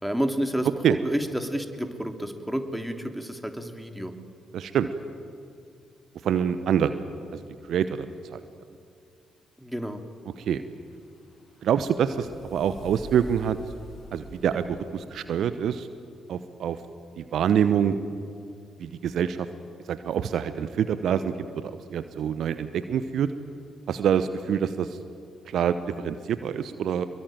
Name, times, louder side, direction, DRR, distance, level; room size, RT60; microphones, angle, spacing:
voice 1, 0.0-4.1 9.6-10.0, equal, ahead, 5 dB, 3.1 m, -30 dB
voice 2, 4.5-4.9 6.2-7.0 7.3-7.4 7.7-8.4 10.4-10.6 11.6-13.6 14.1-15.9 16.3-16.8 17.2-18.0 18.8-19.5 19.9-23.3 23.9-24.9 25.5-27.0, right 8 dB, 60° right, 12 dB, 0.9 m, -26 dB
sound 1, 10.4-15.7, left 1 dB, 60° left, 7.2 m, -47 dB
26.5 x 22.5 x 9.2 m, 2.4 s
figure-of-eight pair, 40°, 0 cm